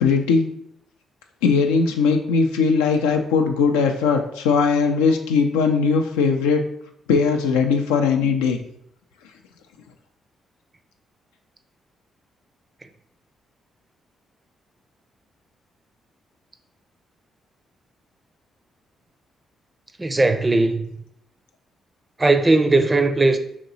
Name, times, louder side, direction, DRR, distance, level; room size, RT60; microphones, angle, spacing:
voice 1, 0.0-0.5 1.4-6.6 7.1-8.6, left 5 dB, 85° left, 0.3 m, -19 dB
voice 2, 20.0-20.9 22.2-23.4, right 2 dB, 25° right, 0.4 m, -18 dB
2.9 x 2.9 x 3.9 m
hypercardioid pair, 45°, 0 cm